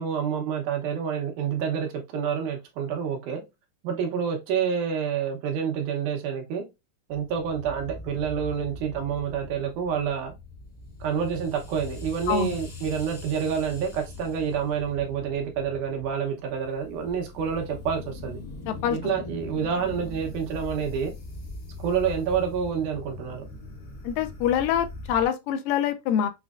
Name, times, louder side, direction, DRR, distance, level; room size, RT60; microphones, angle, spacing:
voice 1, 0.0-3.4 3.8-6.6 7.1-10.3 11.0-18.4 18.9-21.1 21.8-23.4, right 7 dB, 70° right, 2.3 m, -28 dB
sound 1, 7.1-25.3, left 2 dB, 45° left, 1.4 m, -41 dB
voice 2, 18.7-19.0 24.0-26.3, left 9 dB, 80° left, 2.1 m, -25 dB
6.1 x 3.1 x 2.4 m
omnidirectional pair, 3.9 m